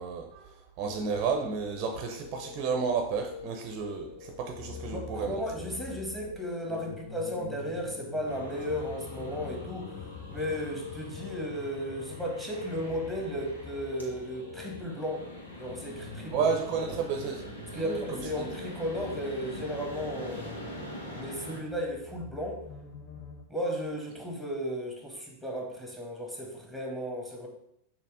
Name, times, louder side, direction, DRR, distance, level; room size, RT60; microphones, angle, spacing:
voice 1, 0.0-5.4 16.3-18.5, right 5 dB, 40° right, 4 dB, 0.7 m, -32 dB
sound 1, 0.8-14.8, left 7 dB, 60° left, 1.1 m, -46 dB
sound 2, 4.5-23.4, left 4 dB, 35° left, 0.9 m, -47 dB
voice 2, 4.9-9.9 10.3-15.3 15.6-16.5 16.9-17.0 17.7-22.6 23.5-27.5, equal, 5° left, 0 dB, 1.6 m, -35 dB
sound 3, 8.2-21.6, left 1 dB, 75° left, 1.5 m, -44 dB
6.7 x 2.9 x 4.8 m, 0.74 s
figure-of-eight pair, 90°, 0 cm